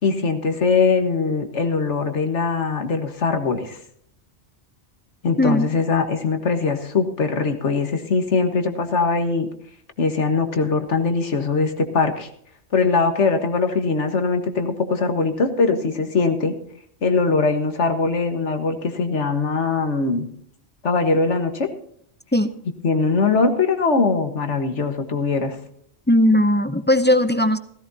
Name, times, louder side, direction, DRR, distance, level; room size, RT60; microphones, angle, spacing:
voice 1, 0.0-3.8 5.2-9.5 10.0-12.3 12.7-16.5 17.0-20.3 20.8-21.7 22.8-25.6, left 4 dB, 85° left, 7 dB, 1.8 m, -21 dB
voice 2, 26.1-27.6, left 1 dB, 15° left, 10 dB, 0.4 m, -17 dB
16.5 x 15.5 x 2.8 m, 0.65 s
omnidirectional pair, 1.2 m